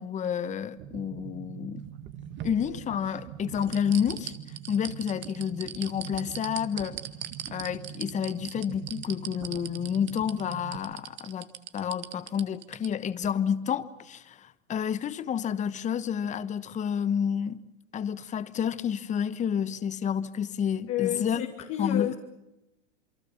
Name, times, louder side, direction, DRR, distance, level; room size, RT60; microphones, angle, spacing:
voice 1, 0.0-1.9 2.4-4.3 4.7-7.0 7.5-11.5 11.7-17.6 17.9-21.4 21.8-22.1, left 8 dB, 20° left, 1.1 m, -30 dB
sound 1, 0.8-10.8, right 10 dB, 45° right, 2.7 m, -43 dB
sound 2, 1.8-3.2 3.6-12.9 13.2-13.3, right 11 dB, 30° right, 2.0 m, -40 dB
voice 2, 20.9-22.1, left 11 dB, 40° left, 2.7 m, -30 dB
28.5 x 23.0 x 7.2 m
hypercardioid pair, 120°, 37 cm